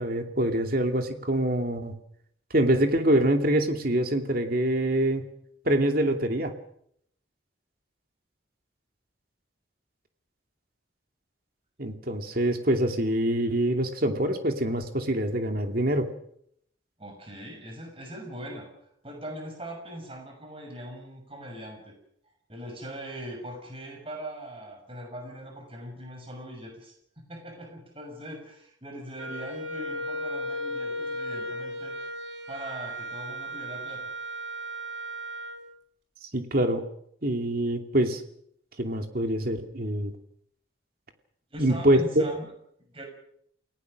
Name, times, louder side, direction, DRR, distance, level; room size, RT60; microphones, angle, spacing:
voice 1, 0.0-1.9 2.5-5.2 5.7-6.5 11.8-16.1 36.3-36.8 37.2-38.2 38.8-40.1 41.6-42.3, right 1 dB, 50° right, 5 dB, 2.7 m, -25 dB
voice 2, 17.0-18.7 19.0-22.0 22.5-32.0 32.5-34.1 41.5-42.5 42.8-43.0, right 1 dB, 30° right, 3 dB, 6.3 m, -41 dB
Wind instrument woodwind instrument, 29.2-35.6, equal, 85° right, 4.2 m, -35 dB
29.0 x 18.0 x 6.5 m, 0.70 s
head